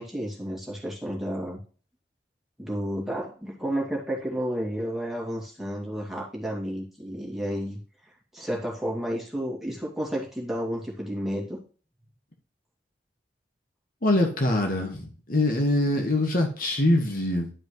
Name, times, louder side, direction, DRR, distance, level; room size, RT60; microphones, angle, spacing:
voice 1, 0.0-1.6 2.6-11.6, equal, ahead, -4 dB, 2.5 m, -31 dB
voice 2, 14.0-17.5, left 1 dB, 50° left, 1 dB, 1.5 m, -24 dB
11.5 x 5.2 x 3.2 m, 0.39 s
head